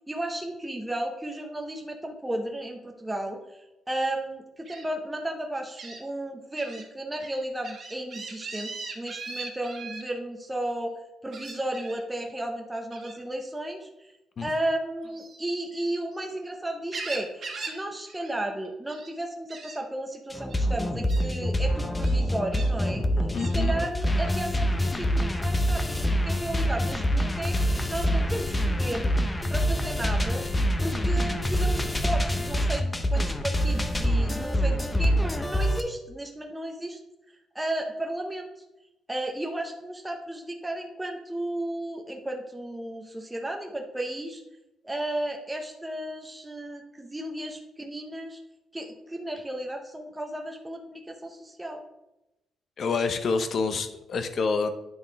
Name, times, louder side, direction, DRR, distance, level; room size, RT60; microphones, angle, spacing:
voice 1, 0.0-3.4 3.9-14.1 14.4-23.1 23.5-29.2 29.5-30.5 30.8-37.0 37.5-38.5 39.1-44.4 44.8-48.4 48.7-51.8, right 1 dB, 10° right, 3 dB, 0.9 m, -34 dB
Gull seagull, 4.7-4.8 5.8-6.0 6.6-6.8 7.2-10.0 11.3-12.0 12.9-13.2 15.0-16.3 16.7-17.8 18.1-18.3 18.6-19.1 19.5-19.8 20.5-20.6 21.1-21.3 22.0-22.7 23.4-23.6, right 4 dB, 50° right, 1.6 m, -39 dB
sound 1, 20.3-35.8, equal, 15° left, 0.7 m, -25 dB
voice 2, 23.3-23.8 52.8-54.7, left 4 dB, 50° left, 9 dB, 0.8 m, -27 dB
9.5 x 3.7 x 4.7 m, 0.92 s
cardioid pair, 90°, 0 cm